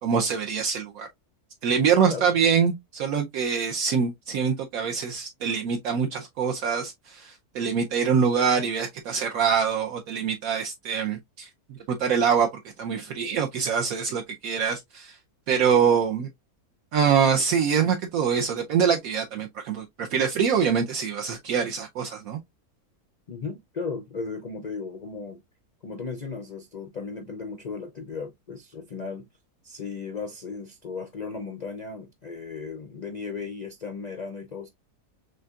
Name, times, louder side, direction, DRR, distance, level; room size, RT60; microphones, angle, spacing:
voice 1, 0.0-1.1 1.6-11.5 11.9-12.5 12.8-15.2 15.5-16.3 16.9-22.4, right 6 dB, 70° right, 1.0 m, -24 dB
voice 2, 23.3-25.4 25.8-29.3 29.6-34.7, left 4 dB, 80° left, 0.3 m, -36 dB
6.4 x 2.6 x 2.3 m
omnidirectional pair, 1.6 m